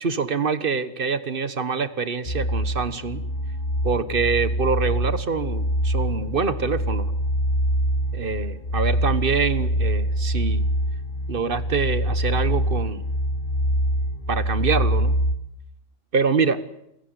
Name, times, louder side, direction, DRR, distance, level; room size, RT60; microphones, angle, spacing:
voice 1, 0.0-3.2 3.8-7.1 8.1-10.7 11.3-13.0 14.3-15.1 16.1-16.6, right 5 dB, 40° right, 13 dB, 1.5 m, -25 dB
sound 1, 2.3-15.4, equal, 35° left, 2.2 m, -24 dB
28.5 x 15.5 x 9.7 m, 0.82 s
omnidirectional pair, 1.5 m